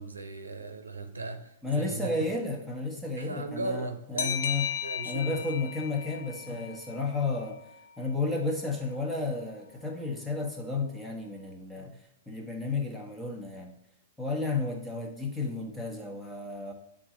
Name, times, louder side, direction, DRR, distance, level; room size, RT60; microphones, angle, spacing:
voice 1, 0.0-2.1 3.2-4.4 4.8-5.4, right 2 dB, 90° right, 0.7 m, -37 dB
voice 2, 1.6-4.6 5.0-7.6 8.0-12.0 12.3-13.7 14.2-16.7, left 3 dB, 5° left, 1.3 m, -32 dB
sound 1, 4.2-7.5, left 8 dB, 70° left, 0.6 m, -35 dB
9.3 x 3.8 x 3.1 m
hypercardioid pair, 110°, 0 cm